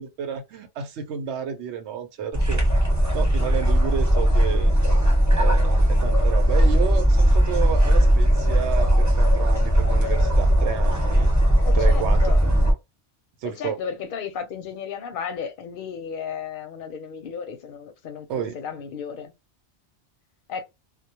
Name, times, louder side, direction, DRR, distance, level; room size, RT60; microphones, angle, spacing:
voice 1, 0.0-2.6 3.1-4.8 5.3-11.3 11.7-12.7 13.4-13.8 18.3-18.6, right 8 dB, 80° right, 0.9 m, -31 dB
sound 1, 2.3-12.7, equal, 15° right, 0.9 m, -18 dB
voice 2, 11.6-12.4 13.6-18.3 18.5-19.3 20.5-20.6, left 7 dB, 55° left, 0.7 m, -34 dB
2.2 x 2.1 x 2.8 m
omnidirectional pair, 1.2 m